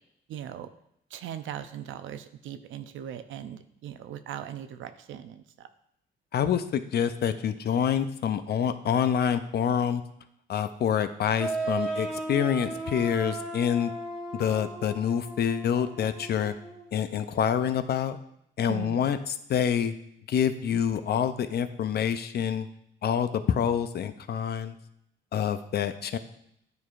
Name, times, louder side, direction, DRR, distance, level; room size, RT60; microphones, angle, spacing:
voice 1, 0.3-0.7 1.1-5.7 18.7-19.0, right 10 dB, 75° right, 10 dB, 0.5 m, -39 dB
voice 2, 6.3-10.0 10.5-13.9 14.3-16.5 16.9-18.2 18.6-19.2 19.5-19.9 20.3-22.7 23.0-24.8 25.3-26.2, left 8 dB, 55° left, 11 dB, 0.5 m, -27 dB
sound 1, 11.4-16.9, right 2 dB, 5° right, 1.6 m, -35 dB
9.4 x 4.6 x 2.5 m, 0.74 s
cardioid pair, 90°, 20 cm